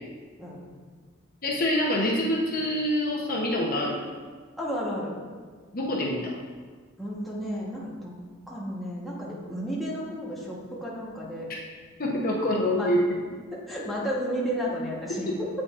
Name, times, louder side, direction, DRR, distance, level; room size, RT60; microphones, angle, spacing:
voice 1, 1.4-4.0 5.7-6.3 12.0-13.0 15.3-15.4, left 1 dB, 45° left, -2 dB, 0.8 m, -26 dB
voice 2, 4.6-5.1 7.0-8.1 8.5-11.5 12.7-12.9 13.5-15.5, equal, ahead, -6 dB, 1.1 m, -32 dB
8.3 x 5.0 x 2.4 m, 1.5 s
head